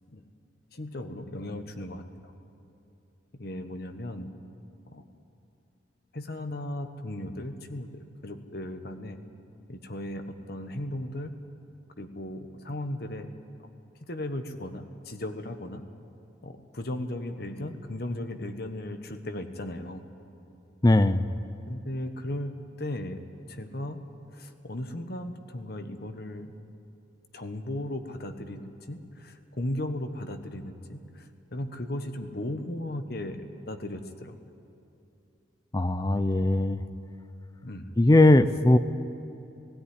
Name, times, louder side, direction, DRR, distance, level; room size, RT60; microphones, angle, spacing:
voice 1, 0.7-2.3 3.3-4.3 4.9-5.0 6.1-9.2 9.7-11.3 12.0-13.3 14.0-15.8 16.4-20.0 21.7-23.2 23.5-24.0 24.3-26.5 27.3-34.3 37.6-37.9, left 1 dB, 55° left, 7 dB, 1.3 m, -36 dB
voice 2, 20.8-21.2 35.7-36.8 38.0-38.8, left 1 dB, 20° left, 12 dB, 0.5 m, -19 dB
17.0 x 16.5 x 9.8 m, 2.7 s
head